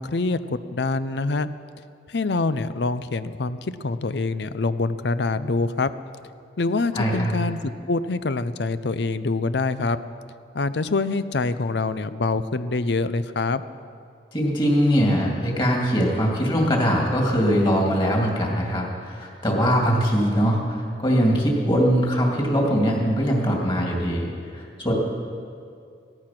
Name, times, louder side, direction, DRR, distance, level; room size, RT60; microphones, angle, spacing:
voice 1, 0.0-1.5 2.1-5.9 6.6-10.0 10.5-13.6, left 3 dB, 65° left, 13 dB, 0.6 m, -25 dB
voice 2, 6.9-7.3 14.3-24.9, equal, 25° left, -1 dB, 2.7 m, -22 dB
17.0 x 13.5 x 6.0 m, 2.3 s
head